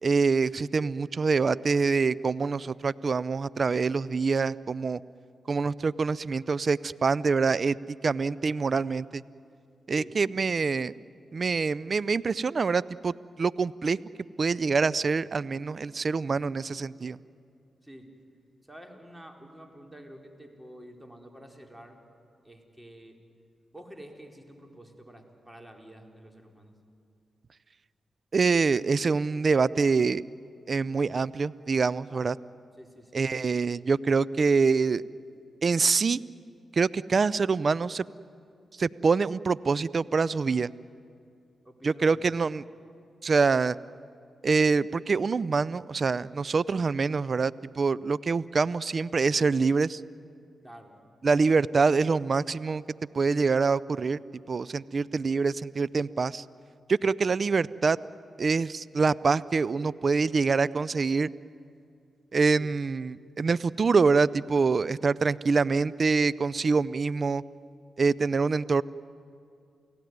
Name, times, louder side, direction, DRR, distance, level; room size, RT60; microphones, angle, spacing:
voice 1, 0.0-5.0 5.5-7.8 8.0-9.2 9.9-10.9 11.3-14.0 14.4-17.2 28.3-30.2 30.7-32.4 33.1-35.0 35.6-36.2 36.7-38.1 38.8-40.7 41.8-42.6 43.2-43.8 44.4-50.0 51.2-52.8 53.1-54.2 54.5-56.4 56.9-58.0 58.4-61.3 62.3-67.4 68.0-68.8, right 4 dB, 55° right, 18 dB, 0.5 m, -25 dB
voice 2, 18.7-22.0 22.4-23.2 23.7-26.7 32.1-32.3 32.8-33.2 41.6-42.3 50.6-50.9 62.5-62.7, equal, 10° right, 3 dB, 4.5 m, -49 dB
29.0 x 17.0 x 9.5 m, 2.4 s
supercardioid pair, 40°, 0 cm